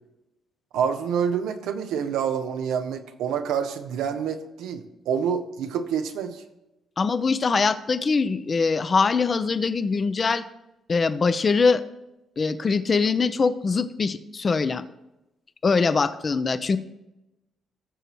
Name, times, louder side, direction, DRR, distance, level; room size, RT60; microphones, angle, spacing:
voice 1, 0.7-6.4, right 7 dB, 85° right, 7 dB, 0.9 m, -27 dB
voice 2, 7.0-10.4 10.9-11.8 12.4-14.8 15.6-16.8, left 4 dB, 35° left, 12 dB, 0.7 m, -22 dB
18.5 x 6.7 x 3.1 m, 0.95 s
cardioid pair, 90°, 0 cm